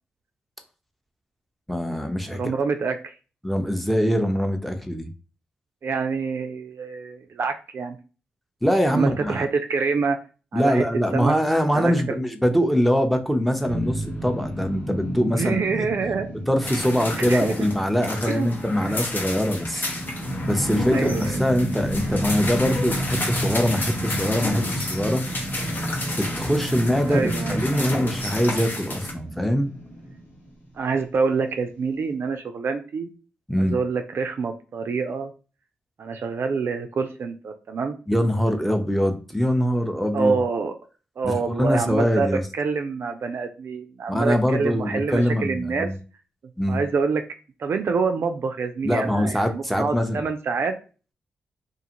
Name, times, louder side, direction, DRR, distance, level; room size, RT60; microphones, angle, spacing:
voice 1, 1.7-2.4 3.4-5.1 8.6-9.4 10.5-15.9 16.5-19.8 20.4-25.2 26.2-29.7 33.5-33.8 38.1-40.4 41.2-42.4 44.1-46.0 46.6-46.8 48.8-50.2, equal, ahead, 5 dB, 0.6 m, -23 dB
voice 2, 2.3-3.1 5.8-8.0 8.9-10.2 10.5-10.8 11.1-11.3 11.7-11.9 15.4-16.3 17.1-17.6 18.3-18.5 18.8-19.0 20.9-21.4 27.1-27.9 30.8-33.1 33.6-35.3 36.0-38.0 40.1-40.7 41.2-42.3 42.5-45.9 46.7-47.2 47.6-50.7, right 4 dB, 60° right, 6 dB, 0.4 m, -26 dB
sound 1, 13.6-30.8, right 1 dB, 85° left, 1.5 m, -31 dB
sound 2, 16.6-29.1, left 2 dB, 45° left, 0.8 m, -31 dB
2.5 x 2.4 x 2.9 m, 0.35 s
supercardioid pair, 40°, 5 cm